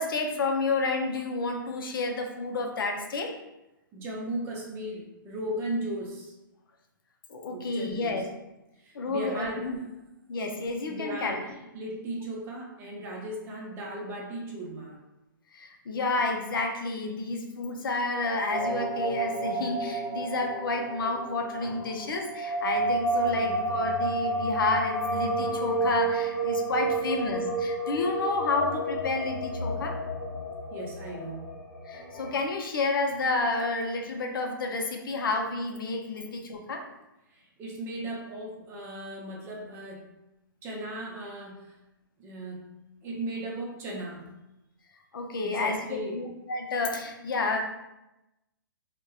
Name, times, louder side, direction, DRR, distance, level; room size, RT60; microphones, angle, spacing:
voice 1, 0.0-3.3 7.3-8.2 8.9-9.8 10.3-11.4 15.5-30.0 31.9-36.8 45.1-47.6, left 3 dB, 75° left, 3 dB, 0.5 m, -30 dB
voice 2, 3.9-6.3 7.5-8.2 8.8-9.9 10.9-11.4 11.7-15.0 23.4-23.6 29.6-29.7 30.7-31.4 37.3-40.1 40.6-41.7 42.2-42.7 43.0-44.2 45.4-46.2, right 1 dB, 20° right, -2 dB, 0.5 m, -37 dB
sound 1, 18.5-32.3, right 2 dB, 55° left, 0.9 m, -30 dB
2.6 x 2.1 x 2.3 m, 0.95 s
hypercardioid pair, 140°, 12 cm